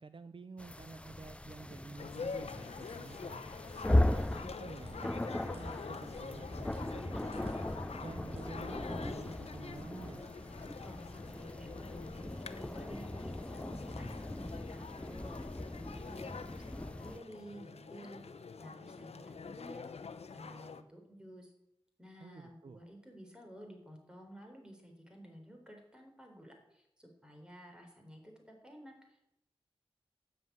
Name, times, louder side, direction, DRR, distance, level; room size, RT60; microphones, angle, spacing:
voice 1, 0.0-3.4 4.0-7.5 8.0-10.2 22.2-22.8, right 4 dB, 55° right, 12 dB, 0.6 m, -50 dB
sound 1, 0.6-17.2, left 1 dB, 10° left, 0.4 m, -38 dB
sound 2, 1.6-11.4, right 1 dB, 75° right, 5.6 m, -66 dB
sound 3, 2.0-20.8, left 5 dB, 90° left, 0.8 m, -46 dB
voice 2, 10.8-15.4 15.9-18.2 18.6-19.8 20.3-21.5 22.0-29.3, equal, 10° right, 2 dB, 4.0 m, -52 dB
13.0 x 7.7 x 9.4 m, 0.82 s
wide cardioid pair, 95°, 10 cm